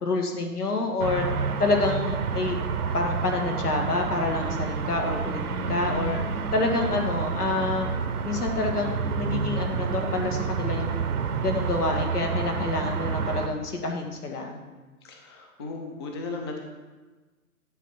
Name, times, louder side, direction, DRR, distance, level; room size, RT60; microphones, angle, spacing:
voice 1, 0.0-1.3 1.6-2.6 2.9-6.2 6.5-8.0 8.2-11.1 11.4-14.6, left 3 dB, 85° left, 3 dB, 1.9 m, -27 dB
sound 1, 1.0-13.5, right 5 dB, 80° right, 0.9 m, -29 dB
voice 2, 15.0-16.6, left 3 dB, 20° left, 2 dB, 0.5 m, -36 dB
10.0 x 4.3 x 5.9 m, 1.3 s
hypercardioid pair, 145°, 45 cm